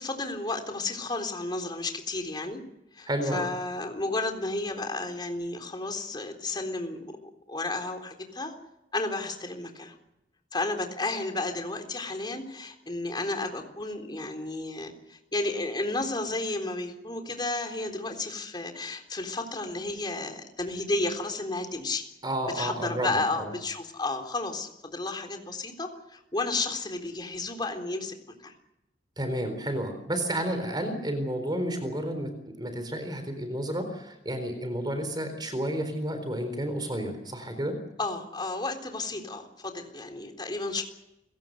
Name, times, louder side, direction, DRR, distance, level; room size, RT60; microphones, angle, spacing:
voice 1, 0.0-2.6 2.9-7.0 7.5-8.5 8.9-9.9 10.5-22.1 22.5-28.2 28.4-28.5 38.0-40.8, left 2 dB, 25° left, 4 dB, 3.8 m, -32 dB
voice 2, 3.1-3.5 22.2-23.5 29.2-37.8, right 1 dB, 25° right, 8 dB, 4.1 m, -31 dB
29.5 x 17.5 x 6.7 m, 0.87 s
head